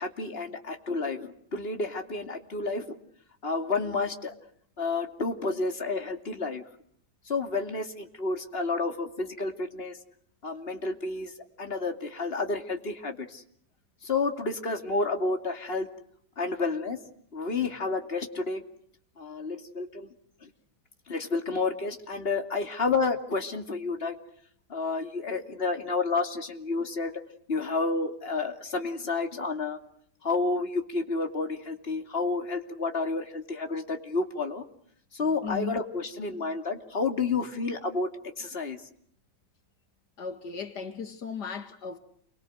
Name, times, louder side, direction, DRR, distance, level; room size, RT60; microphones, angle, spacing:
voice 1, 0.0-3.0 3.4-4.3 4.8-6.6 7.3-10.0 10.4-11.3 11.6-13.4 14.0-15.9 16.4-17.0 17.3-18.6 19.2-20.1 20.4-20.5 21.1-24.2 24.7-27.1 27.5-29.8 30.2-34.6 35.1-38.8, left 3 dB, 35° left, 2.9 m, -30 dB
voice 2, 35.4-35.8 40.2-42.0, left 5 dB, 80° left, 2.5 m, -36 dB
29.0 x 24.0 x 7.9 m
omnidirectional pair, 1.8 m